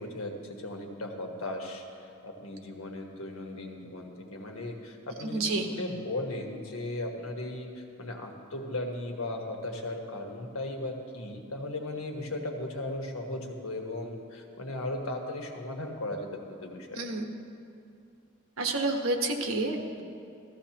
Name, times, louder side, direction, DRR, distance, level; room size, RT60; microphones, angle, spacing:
voice 1, 0.0-5.4 5.7-17.0, left 1 dB, 85° left, 2 dB, 1.3 m, -37 dB
voice 2, 5.2-5.7 16.9-17.3 18.6-20.0, right 2 dB, 75° right, 3 dB, 1.2 m, -29 dB
14.5 x 13.5 x 3.0 m, 2.5 s
head